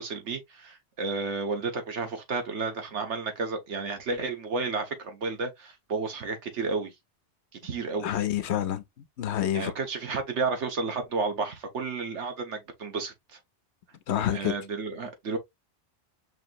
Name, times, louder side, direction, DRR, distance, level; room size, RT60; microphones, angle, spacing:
voice 1, 0.0-6.9 7.6-8.1 9.5-13.4 14.3-15.4, right 4 dB, 90° right, 1.5 m, -32 dB
voice 2, 8.0-9.7 14.1-14.5, left 11 dB, 75° left, 0.9 m, -28 dB
5.7 x 2.9 x 2.4 m
omnidirectional pair, 1.2 m